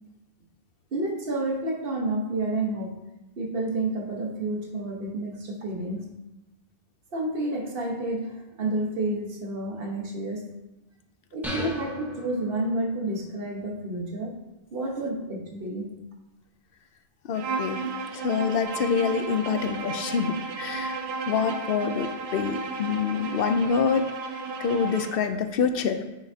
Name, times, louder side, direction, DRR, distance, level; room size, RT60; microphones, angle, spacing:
voice 1, 0.9-2.9 3.4-6.0 7.1-10.5 11.3-14.4 14.7-15.9, right 2 dB, 65° right, 0 dB, 1.4 m, -30 dB
sound 1, 11.4-13.1, equal, ahead, 1.1 m, -36 dB
voice 2, 17.3-17.8 18.1-21.0 21.3-24.1 24.6-26.0, left 6 dB, 70° left, 8 dB, 0.8 m, -26 dB
Bowed string instrument, 17.3-25.3, right 3 dB, 90° right, 0.9 m, -33 dB
8.9 x 5.7 x 2.8 m, 1.0 s
omnidirectional pair, 1.0 m